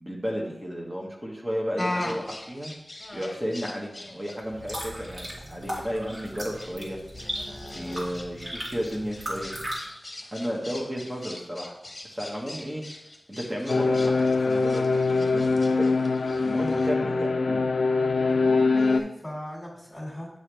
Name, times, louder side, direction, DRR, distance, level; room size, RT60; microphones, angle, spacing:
voice 1, 0.0-2.7 3.1-7.0 7.7-9.6 10.3-11.8 12.1-12.8 13.3-15.9 16.4-17.7 18.1-18.4, equal, 20° right, -2 dB, 1.5 m, -33 dB
sound 1, 1.8-16.9, left 1 dB, 35° left, 1.1 m, -40 dB
sound 2, 4.4-9.8, equal, 45° right, 2.6 m, -37 dB
sound 3, 13.7-19.0, left 3 dB, 75° left, 0.4 m, -23 dB
voice 2, 18.3-20.3, equal, 15° left, -4 dB, 2.2 m, -37 dB
7.1 x 5.7 x 3.4 m, 0.82 s
cardioid pair, 45°, 0 cm